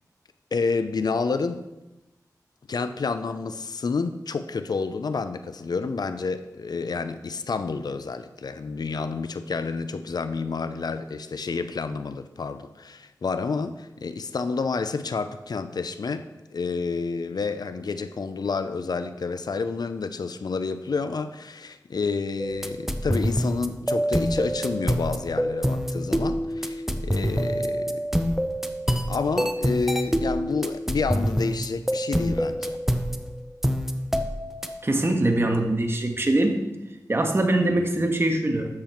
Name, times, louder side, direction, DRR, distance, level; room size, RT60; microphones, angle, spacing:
voice 1, 0.5-1.6 2.7-28.0 29.1-32.8, left 4 dB, 70° left, 11 dB, 0.6 m, -29 dB
sound 1, 22.4-34.7, equal, 5° right, 0.8 m, -26 dB
voice 2, 34.8-36.6 37.1-38.7, right 1 dB, 35° right, 4 dB, 1.5 m, -22 dB
12.0 x 7.6 x 4.5 m, 1.0 s
wide cardioid pair, 65°, 7 cm